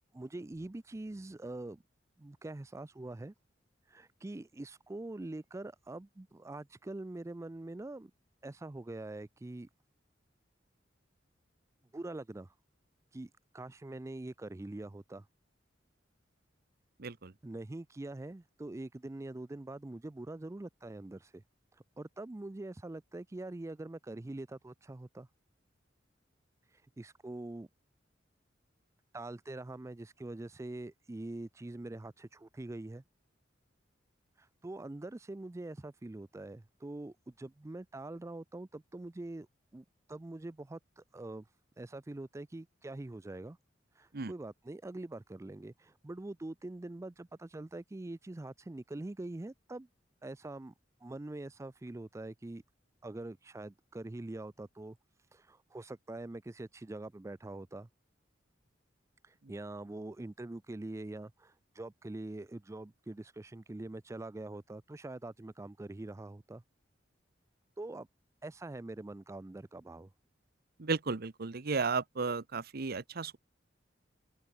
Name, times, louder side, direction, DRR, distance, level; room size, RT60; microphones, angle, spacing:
voice 1, 0.0-1.8 2.2-3.3 3.9-8.1 8.4-9.7 11.9-12.5 13.1-15.3 17.4-21.4 21.7-25.3 26.7-27.7 29.1-33.0 34.4-39.5 39.7-41.5 41.8-43.6 44.0-49.9 50.2-50.7 51.0-52.6 53.0-55.0 55.3-57.9 59.2-66.6 67.8-68.1 68.4-70.1, right 2 dB, 15° right, 0.4 m, -44 dB
voice 2, 17.0-17.3 44.1-44.3 70.8-73.4, right 4 dB, 55° right, 0.9 m, -34 dB
open air
head